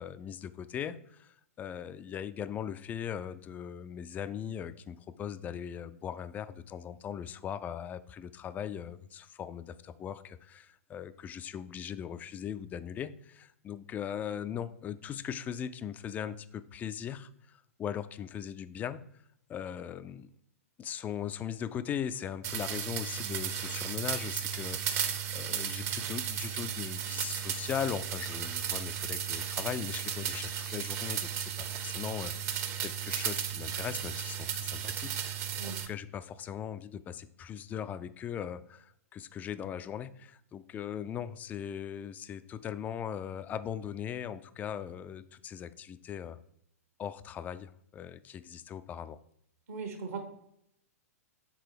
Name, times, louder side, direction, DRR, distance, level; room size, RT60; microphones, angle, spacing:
voice 1, 0.0-19.0 19.5-20.3 20.8-46.4 47.0-49.2, left 9 dB, 20° left, 13 dB, 0.4 m, -39 dB
sound 1, 22.4-35.9, right 9 dB, 30° right, 0.7 m, -35 dB
voice 2, 49.7-50.2, right 5 dB, 65° right, 5 dB, 1.3 m, -38 dB
6.1 x 4.0 x 5.0 m, 0.72 s
figure-of-eight pair, 110°, 8 cm